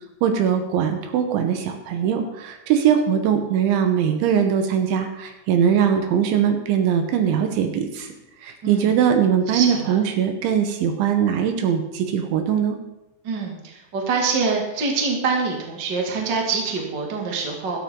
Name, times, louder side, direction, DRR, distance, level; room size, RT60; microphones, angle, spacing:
voice 1, 0.2-8.1 8.4-12.8, right 8 dB, 75° right, 6 dB, 3.4 m, -21 dB
voice 2, 8.6-9.0 9.5-9.9 13.2-17.8, right 4 dB, 35° right, 0 dB, 2.0 m, -25 dB
16.0 x 12.5 x 3.9 m, 0.94 s
omnidirectional pair, 5.6 m